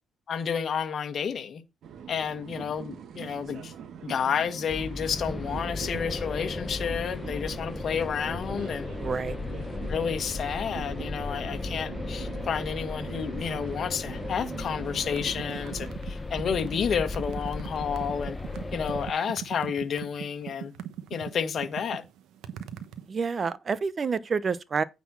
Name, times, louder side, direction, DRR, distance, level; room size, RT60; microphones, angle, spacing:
voice 1, 0.3-1.6 2.1-3.7 4.0-8.9 9.9-18.4 18.7-20.7 21.1-22.0, left 7 dB, 55° left, 1.7 m, -30 dB
sound 1, 1.8-16.0, right 8 dB, 70° right, 1.4 m, -43 dB
sound 2, 4.7-19.1, left 2 dB, 20° left, 1.1 m, -36 dB
voice 2, 9.0-9.3 23.1-24.8, right 5 dB, 40° right, 0.9 m, -28 dB
sound 3, 14.9-23.1, right 9 dB, 85° right, 1.1 m, -40 dB
9.4 x 4.2 x 6.1 m
cardioid pair, 90°, 0 cm